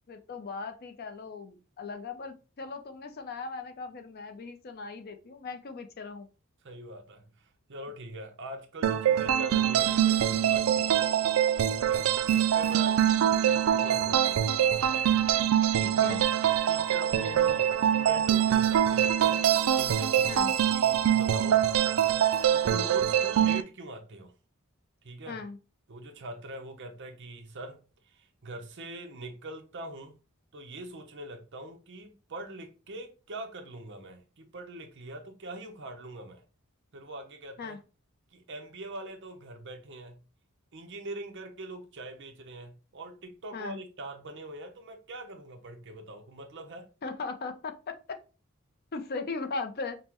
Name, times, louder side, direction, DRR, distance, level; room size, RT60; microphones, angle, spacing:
voice 1, 0.1-6.3 13.1-13.3 15.8-16.2 20.3-20.5 25.3-25.6 37.6-37.8 43.5-43.8 47.0-48.0 48.9-50.0, left 4 dB, 45° left, 0.5 m, -38 dB
voice 2, 6.6-10.9 11.8-13.0 13.5-14.4 15.9-16.2 16.7-19.4 19.7-21.7 22.5-24.3 25.0-25.4 25.9-27.8 28.0-30.1 30.5-36.4 36.9-37.8 38.3-40.2 40.7-46.9, right 2 dB, 55° right, 0.7 m, -42 dB
sound 1, 8.8-23.6, right 10 dB, 70° right, 0.3 m, -24 dB
5.3 x 2.1 x 2.9 m
head